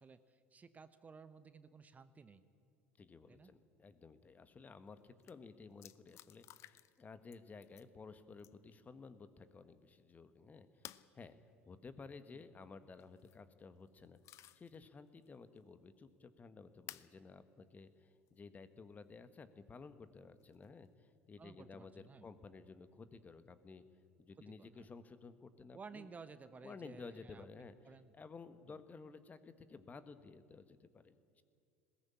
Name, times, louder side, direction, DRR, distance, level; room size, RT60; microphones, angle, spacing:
voice 1, 0.0-2.4 3.3-3.5 12.3-12.4 21.4-22.3 24.6-24.9 25.7-28.1 28.7-28.8, right 5 dB, 25° right, 12 dB, 1.0 m, -56 dB
voice 2, 3.0-11.4 11.7-14.2 14.5-23.8 24.2-26.1 26.6-27.7 28.1-31.4, left 4 dB, 25° left, 12 dB, 1.4 m, -54 dB
sound 1, 4.9-5.0 5.2-5.3 5.8-7.0 7.3-7.9 8.4-8.7 10.8-11.1 13.0-13.4 13.9-14.8 15.2-15.3 16.9-17.1 18.3-18.4 20.4-20.9, left 13 dB, 45° left, 0.7 m, -55 dB
20.5 x 17.5 x 8.7 m, 2.3 s
figure-of-eight pair, 70°, 7 cm